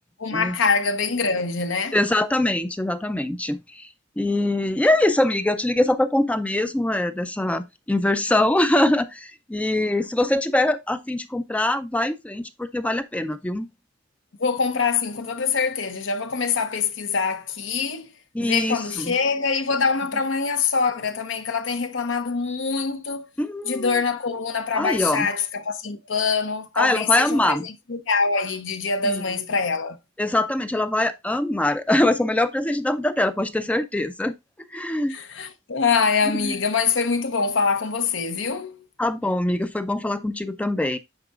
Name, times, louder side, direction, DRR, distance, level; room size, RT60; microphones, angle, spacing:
voice 1, 0.2-2.0 14.4-18.1 18.4-23.3 23.6-30.0 35.1-38.8, left 5 dB, 70° left, 0.8 m, -24 dB
voice 2, 1.9-3.9 4.2-13.7 18.3-19.1 23.4-23.9 24.8-25.3 26.8-27.7 29.0-29.2 30.2-34.3 34.7-35.2 36.4-36.5 39.0-41.0, left 1 dB, 5° left, 0.4 m, -23 dB
8.9 x 4.7 x 2.4 m
head